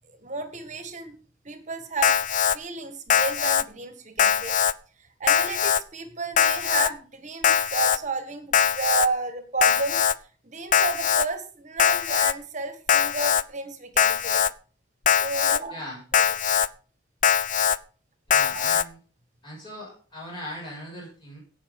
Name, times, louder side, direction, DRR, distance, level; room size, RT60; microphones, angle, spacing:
voice 1, 0.1-1.1 1.4-2.1 2.5-4.6 5.0-10.0 10.4-14.5 15.2-15.8 16.2-16.3 18.5-18.8, right 3 dB, 40° right, 9 dB, 1.9 m, -32 dB
Alarm, 2.0-2.6 3.1-3.6 4.2-4.7 5.3-5.8 6.4-6.9 7.4-8.0 8.5-9.1 9.6-10.1 10.7-11.3 11.8-12.3 12.9-13.4 14.0-14.5 15.1-15.6 16.1-16.7 17.2-17.8 18.3-18.8, left 8 dB, 40° left, 0.5 m, -21 dB
voice 2, 15.7-16.0 18.3-19.0 19.4-21.4, left 1 dB, 25° left, -4 dB, 6.5 m, -39 dB
17.0 x 6.5 x 5.5 m, 0.38 s
head